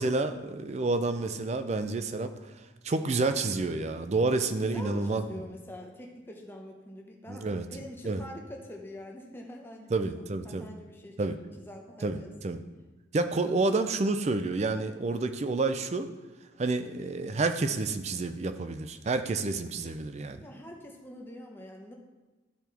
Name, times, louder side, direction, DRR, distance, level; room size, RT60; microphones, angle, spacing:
voice 1, 0.0-2.3 2.8-5.2 7.3-7.7 8.0-8.2 9.9-10.7 11.2-11.4 12.0-12.6 13.1-16.1 16.6-20.4, right 3 dB, 35° right, 9 dB, 0.4 m, -29 dB
voice 2, 4.6-11.2 11.6-12.3 20.4-21.9, left 1 dB, 10° left, 1 dB, 0.8 m, -45 dB
12.0 x 4.5 x 3.4 m, 1.2 s
head